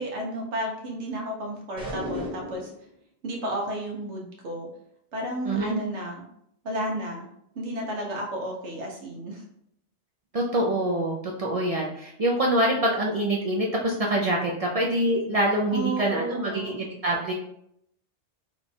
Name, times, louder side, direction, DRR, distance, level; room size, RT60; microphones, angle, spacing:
voice 1, 0.0-2.7 3.2-4.7 5.1-6.2 6.6-7.3 7.5-9.4 15.7-16.7, right 1 dB, 80° right, 0 dB, 1.1 m, -32 dB
sound 1, 1.8-2.8, left 1 dB, 5° right, 0.9 m, -34 dB
voice 2, 5.4-5.8 10.3-17.3, right 1 dB, 60° right, -1 dB, 0.3 m, -25 dB
3.0 x 2.3 x 4.0 m, 0.73 s
omnidirectional pair, 1.2 m